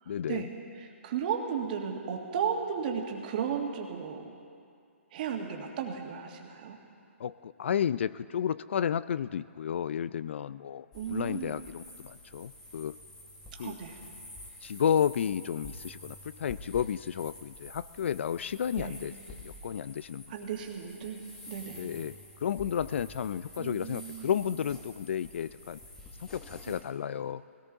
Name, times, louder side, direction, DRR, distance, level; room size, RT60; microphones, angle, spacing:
voice 1, 0.1-0.5 7.2-13.0 13.6-13.8 14.6-20.3 21.8-25.8 26.2-27.4, left 8 dB, 60° left, 17 dB, 0.4 m, -32 dB
voice 2, 1.0-4.2 5.1-6.8 10.9-11.6 13.6-14.0 18.8-18.9 20.3-21.2 21.5-21.8 23.6-24.3 26.7-26.8, right 7 dB, 40° right, 2 dB, 1.7 m, -34 dB
sound 1, 10.9-26.8, left 1 dB, 10° left, 1.2 m, -49 dB
19.5 x 17.5 x 4.0 m, 2.3 s
hypercardioid pair, 165°, 7 cm